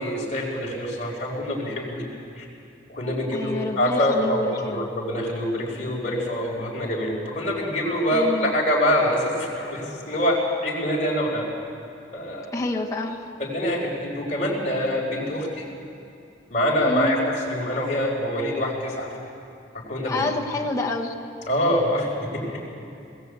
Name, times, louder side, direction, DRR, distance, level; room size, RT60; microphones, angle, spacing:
voice 1, 0.0-2.1 2.4-2.5 2.9-11.5 12.1-12.6 13.4-15.6 16.5-19.1 19.7-20.3 21.5-22.6, equal, 40° left, -3 dB, 4.5 m, -25 dB
voice 2, 3.3-4.9 8.1-8.6 12.5-13.2 16.9-17.2 20.1-21.1, left 2 dB, 15° left, 0 dB, 1.3 m, -28 dB
20.0 x 17.0 x 8.2 m, 2.5 s
head